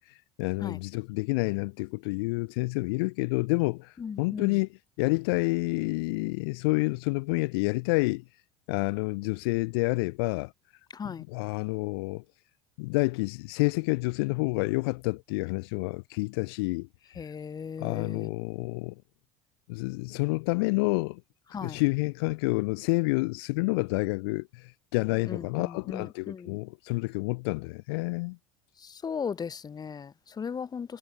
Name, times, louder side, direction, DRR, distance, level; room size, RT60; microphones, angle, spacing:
voice 1, 0.0-8.2 8.7-10.5 11.0-12.2 12.8-16.9 17.1-17.3 17.8-18.9 19.7-21.2 21.6-28.4, left 27 dB, 65° left, 2.6 m, -29 dB
voice 2, 4.0-4.6 10.9-11.2 17.2-18.3 21.5-21.8 25.3-26.6 28.8-31.0, left 6 dB, 30° left, 3.8 m, -37 dB
hypercardioid pair, 75°, 14 cm